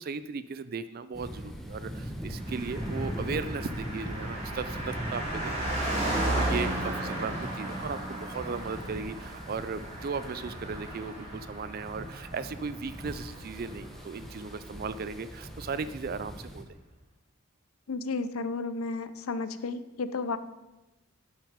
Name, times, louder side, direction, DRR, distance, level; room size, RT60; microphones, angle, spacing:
voice 1, 0.0-16.6, right 4 dB, 45° right, 14 dB, 0.4 m, -37 dB
sound 1, 1.1-16.6, equal, ahead, 0.8 m, -40 dB
Car passing by, 2.4-14.2 14.5-14.6, right 1 dB, 30° right, 2.7 m, -35 dB
voice 2, 17.9-20.4, left 3 dB, 85° left, 12 dB, 0.6 m, -32 dB
11.5 x 6.3 x 5.1 m, 1.0 s
head